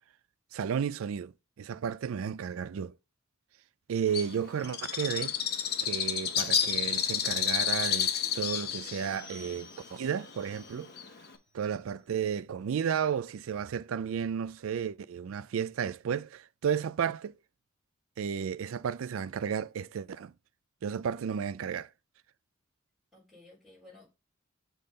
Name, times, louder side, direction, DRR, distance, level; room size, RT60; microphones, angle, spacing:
voice 1, 0.5-2.9 3.9-5.4 5.8-10.9 11.5-17.3 18.2-20.3 20.8-21.9, right 7 dB, 70° right, 0.4 m, -33 dB
Bird, 4.1-11.4, left 8 dB, 50° left, 0.9 m, -31 dB
sound 1, 6.2-11.3 11.7-11.8, left 2 dB, 20° right, 2.5 m, -55 dB
voice 2, 23.1-24.1, left 2 dB, ahead, 4.5 m, -56 dB
6.7 x 3.9 x 5.3 m
head